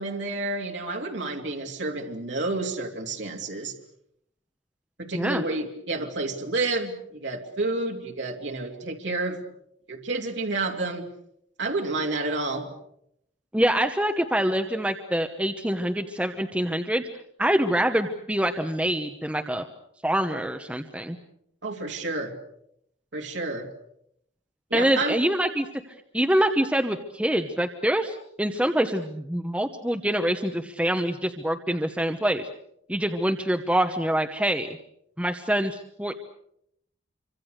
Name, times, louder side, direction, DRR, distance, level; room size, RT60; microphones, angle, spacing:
voice 1, 0.0-3.7 5.0-9.4 9.9-11.1 11.6-12.7 21.6-22.3 23.1-23.7 24.7-25.2, right 2 dB, 70° right, 1 dB, 3.1 m, -30 dB
voice 2, 13.5-17.0 17.4-19.7 20.0-21.2 24.7-25.7 26.1-32.5 32.9-34.7 35.2-36.2, right 1 dB, 5° right, 5 dB, 1.1 m, -25 dB
27.0 x 25.0 x 6.6 m, 0.74 s
head